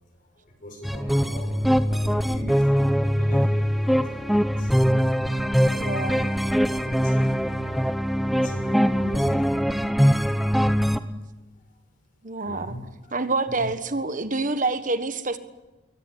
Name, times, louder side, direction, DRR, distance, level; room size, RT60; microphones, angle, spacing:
voice 1, 0.4-2.7 2.9-4.7 5.2-7.9 8.3-9.4 12.4-13.1 13.5-13.7, equal, 45° left, 2 dB, 6.6 m, -41 dB
sound 1, 0.8-11.0, equal, ahead, 0.9 m, -22 dB
voice 2, 5.7-6.3 12.2-12.8 13.1-15.4, right 3 dB, 40° right, 10 dB, 1.5 m, -27 dB
22.5 x 18.5 x 9.9 m, 1.1 s
head